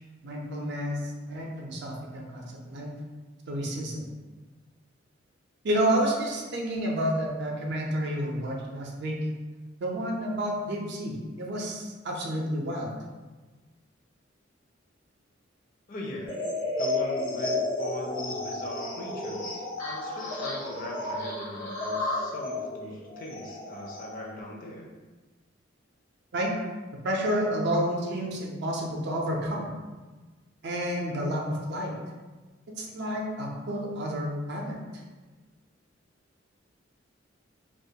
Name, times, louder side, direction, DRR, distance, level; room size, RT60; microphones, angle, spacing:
voice 1, 0.2-1.0 1.3-2.9 3.5-4.0 5.6-9.2 9.8-12.9 26.3-26.5 27.0-29.7 30.6-31.9 32.7-34.8, equal, 60° right, -1 dB, 0.5 m, -30 dB
voice 2, 15.9-16.3 16.8-24.9, left 2 dB, 45° left, -1 dB, 0.4 m, -39 dB
sound 1, 16.3-24.3, left 2 dB, 75° left, 0.8 m, -32 dB
2.3 x 2.2 x 2.7 m, 1.3 s
head